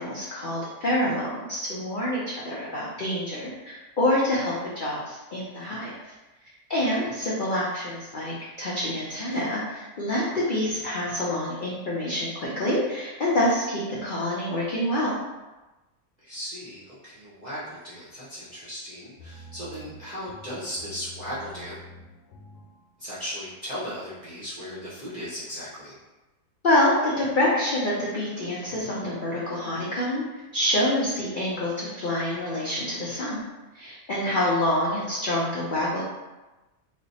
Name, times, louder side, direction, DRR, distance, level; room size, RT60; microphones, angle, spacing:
voice 1, 0.0-6.1 6.7-15.1 26.6-30.2 30.5-33.4 33.7-36.0, left 1 dB, 70° left, -6 dB, 0.5 m, -26 dB
voice 2, 16.2-21.8 23.0-26.0, equal, 45° right, -9 dB, 0.6 m, -37 dB
sound 1, 19.2-22.9, equal, 90° left, 1.1 m, -47 dB
3.1 x 2.0 x 3.9 m, 1.1 s
omnidirectional pair, 1.6 m